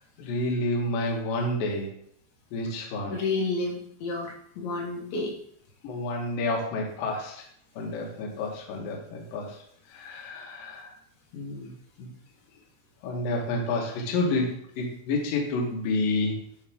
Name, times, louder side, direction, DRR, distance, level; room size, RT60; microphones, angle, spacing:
voice 1, 0.2-1.9 2.5-3.2 5.8-7.4 7.8-9.5 9.9-10.9 11.3-11.7 12.0-12.1 13.0-16.4, left 2 dB, 65° left, 0 dB, 2.8 m, -29 dB
voice 2, 3.1-5.3, left 3 dB, 85° left, -1 dB, 3.7 m, -30 dB
10.5 x 4.7 x 3.6 m, 0.67 s
omnidirectional pair, 5.1 m